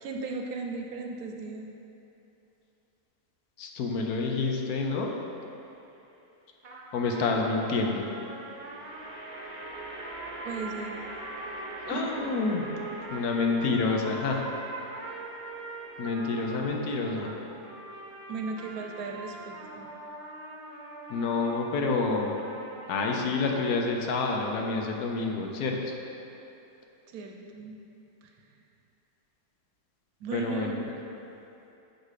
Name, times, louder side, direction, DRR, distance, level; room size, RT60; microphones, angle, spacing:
voice 1, 0.0-1.7 10.4-11.0 11.8-12.0 18.3-19.9 27.1-27.8 30.2-30.7, right 3 dB, 70° right, 2 dB, 1.0 m, -36 dB
voice 2, 3.6-5.1 6.9-8.1 11.9-12.7 13.1-14.4 16.0-17.3 21.1-22.3 22.9-25.9 30.3-30.8, left 3 dB, 75° left, 1 dB, 1.2 m, -28 dB
sound 1, 5.3-5.9 8.4-19.8, right 2 dB, 10° right, 0.9 m, -46 dB
sound 2, 6.6-23.8, right 2 dB, 45° right, 0.8 m, -43 dB
6.5 x 5.2 x 4.9 m, 2.9 s
omnidirectional pair, 1.7 m